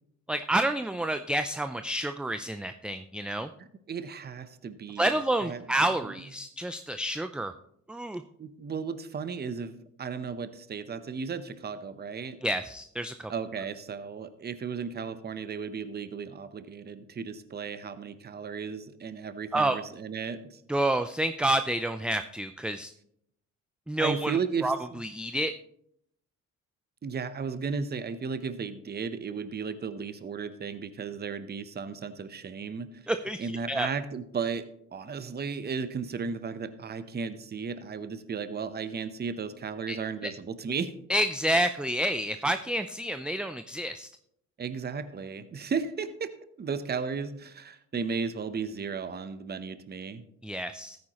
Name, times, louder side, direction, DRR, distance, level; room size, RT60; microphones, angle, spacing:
voice 1, 0.3-3.5 5.0-7.5 7.9-8.2 12.4-13.3 19.5-19.8 20.7-22.9 23.9-25.5 33.1-33.9 39.9-40.0 41.1-44.1 50.4-51.0, right 1 dB, 5° right, 9 dB, 0.4 m, -29 dB
voice 2, 3.6-5.7 6.0-6.1 8.4-12.4 13.3-20.6 24.0-25.0 27.0-33.0 33.4-34.7 34.9-40.9 44.6-46.3 46.6-50.2, right 5 dB, 35° right, 12 dB, 0.8 m, -35 dB
13.5 x 9.5 x 3.0 m, 0.72 s
cardioid pair, 90°, 30 cm